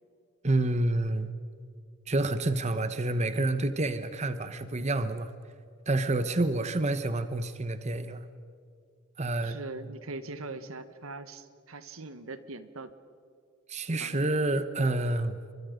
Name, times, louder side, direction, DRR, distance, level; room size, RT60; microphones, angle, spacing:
voice 1, 0.4-1.3 2.1-5.3 5.9-8.2 9.2-9.6 13.7-15.5, right 2 dB, 30° right, 11 dB, 1.0 m, -28 dB
voice 2, 9.4-12.9 14.0-14.2, right 3 dB, 85° right, 12 dB, 1.4 m, -41 dB
29.5 x 24.0 x 5.2 m, 2.3 s
head